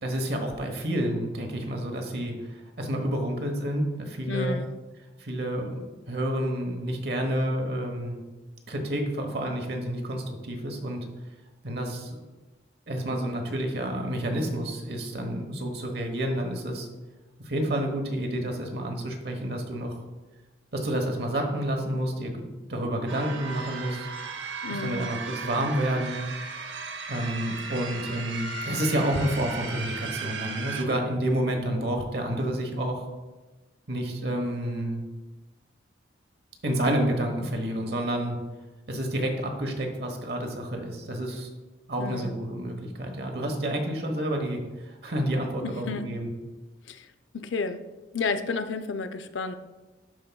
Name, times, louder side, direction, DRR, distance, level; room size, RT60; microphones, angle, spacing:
voice 1, 0.0-2.3 2.8-4.6 5.2-8.2 8.7-11.0 11.6-12.1 12.9-16.9 17.4-20.0 20.7-22.4 22.7-24.1 24.8-26.5 27.1-33.1 33.9-35.0 36.6-38.3 38.9-41.5 41.9-46.3, right 1 dB, 60° right, 3 dB, 1.1 m, -29 dB
voice 2, 4.3-4.7 24.6-25.1 42.0-42.4 45.6-46.1 46.9-47.1 47.3-47.8 48.1-49.5, left 4 dB, 85° left, 10 dB, 0.4 m, -31 dB
sound 1, 23.1-30.8, right 4 dB, 80° right, 0.7 m, -36 dB
12.5 x 4.6 x 2.3 m, 1.2 s
head